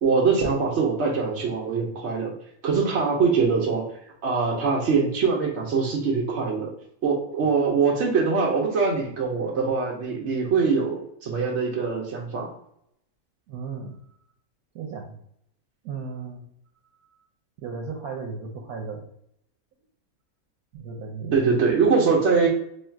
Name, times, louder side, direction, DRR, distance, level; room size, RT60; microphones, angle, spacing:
voice 1, 0.0-2.3 2.6-3.8 4.2-6.7 7.0-12.5 21.3-22.5, right 5 dB, 60° right, -2 dB, 0.8 m, -23 dB
voice 2, 13.5-14.0 14.7-15.2 15.8-16.5 17.6-19.0 20.7-21.6, right 5 dB, 80° right, 2 dB, 1.1 m, -35 dB
3.1 x 2.4 x 4.3 m, 0.72 s
omnidirectional pair, 1.5 m